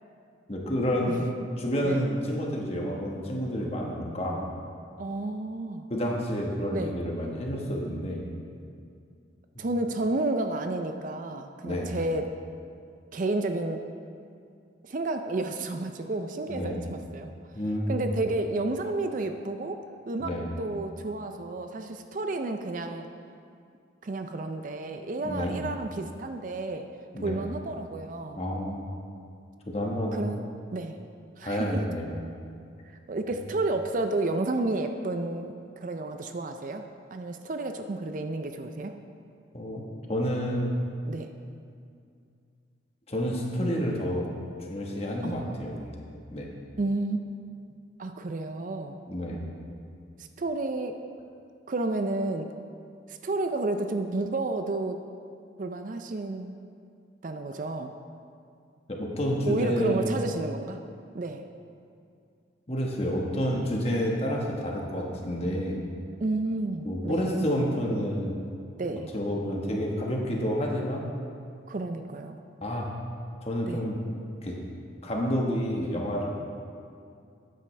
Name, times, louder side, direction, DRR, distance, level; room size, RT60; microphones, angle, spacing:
voice 1, 0.5-1.2 1.6-4.4 5.9-8.2 11.6-12.0 16.5-16.8 17.5-18.1 20.2-20.5 25.2-25.6 27.1-27.4 28.4-28.8 29.7-30.2 31.4-32.1 33.4-33.5 39.5-39.8 40.1-40.7 43.1-44.3 44.7-46.0 46.3-46.5 49.1-49.4 58.9-60.2 62.7-65.8 66.8-68.4 69.1-71.1 72.6-72.9 73.4-74.0 74.4-74.6 75.0-76.3, equal, 30° left, -1 dB, 1.3 m, -29 dB
voice 2, 5.0-5.9 6.7-6.9 9.6-12.2 13.1-13.8 14.8-17.3 17.9-20.3 20.6-23.1 24.0-26.9 27.2-28.4 30.1-30.9 31.4-31.8 32.9-39.0 41.1-41.3 45.2-45.5 46.8-47.4 48.0-49.0 50.2-50.9 51.7-52.5 53.1-55.0 55.6-56.5 57.2-57.9 59.5-60.8 61.1-61.4 66.2-67.3 68.8-69.1 71.7-72.4 73.7-73.8, right 2 dB, 40° right, 6 dB, 0.4 m, -31 dB
13.0 x 9.1 x 3.3 m, 2.4 s
head